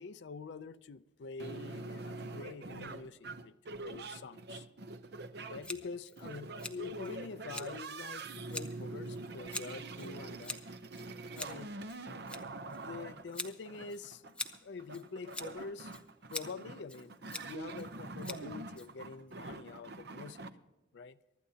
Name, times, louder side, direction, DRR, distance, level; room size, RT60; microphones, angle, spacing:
voice 1, 0.0-3.5 3.8-4.7 5.5-10.6 11.3-11.7 12.8-14.3 14.6-16.0 16.3-20.5 20.9-21.2, left 4 dB, 65° left, 11 dB, 0.4 m, -46 dB
sound 1, 1.4-20.5, right 3 dB, 60° right, 0.7 m, -45 dB
Scissors, 5.6-19.3, left 2 dB, 5° left, 0.8 m, -47 dB
24.0 x 12.5 x 2.8 m, 1.1 s
head